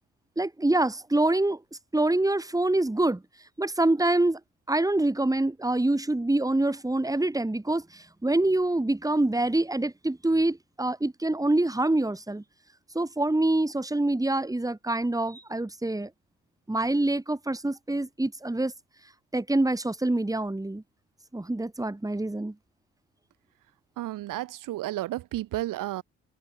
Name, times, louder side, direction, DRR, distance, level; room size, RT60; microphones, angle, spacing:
voice 1, 0.4-1.6 1.9-3.2 3.6-4.4 4.7-12.4 12.9-16.1 16.7-18.7 19.3-20.8 21.3-22.5, right 2 dB, 10° right, 3.2 m, -25 dB
voice 2, 24.0-26.0, right 15 dB, 75° right, 3.9 m, -32 dB
open air
supercardioid pair, 60°, 32 cm